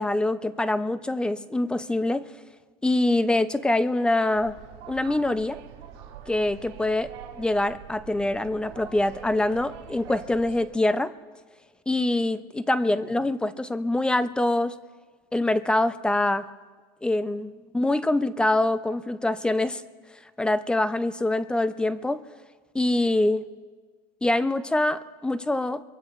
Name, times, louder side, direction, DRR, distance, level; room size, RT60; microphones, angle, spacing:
voice 1, 0.0-2.3 2.8-4.6 4.9-5.6 6.3-7.1 7.4-11.1 11.9-14.8 15.3-16.5 17.0-19.8 20.4-22.2 22.7-23.5 24.2-25.8, left 2 dB, 5° left, 13 dB, 0.4 m, -24 dB
sound 1, 4.3-10.7, right 9 dB, 85° right, 3.0 m, -44 dB
23.0 x 23.0 x 2.4 m, 1.5 s
cardioid pair, 145°, 13 cm